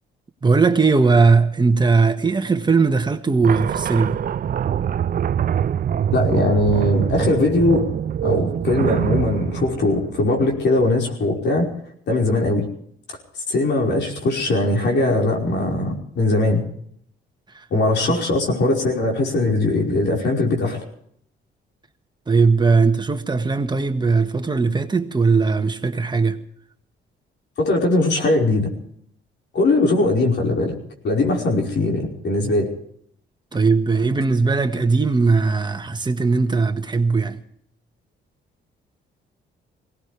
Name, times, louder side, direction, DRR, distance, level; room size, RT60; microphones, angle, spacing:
voice 1, 0.4-4.2 17.5-17.6 22.3-26.4 33.5-37.4, right 4 dB, 20° right, 1.6 m, -19 dB
sound 1, 3.4-10.8, right 9 dB, 45° right, 0.6 m, -24 dB
voice 2, 6.1-7.8 8.2-11.7 12.1-12.7 13.5-16.6 17.7-20.8 27.6-28.7 29.5-30.7 31.0-32.7, left 2 dB, 60° left, 5.2 m, -20 dB
22.0 x 18.0 x 3.5 m
cardioid pair, 90°, 20 cm